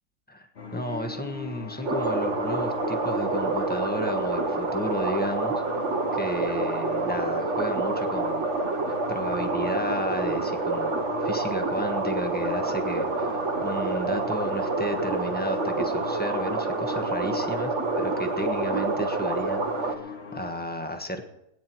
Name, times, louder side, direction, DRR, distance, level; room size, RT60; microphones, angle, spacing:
sound 1, 0.6-20.5, left 6 dB, 45° left, 1.2 m, -39 dB
voice 1, 0.7-5.6 6.1-8.4 9.1-21.2, equal, 5° left, 5 dB, 1.1 m, -33 dB
sound 2, 1.8-20.0, right 3 dB, 50° right, 1.4 m, -28 dB
20.5 x 9.8 x 4.6 m, 0.84 s
omnidirectional pair, 1.7 m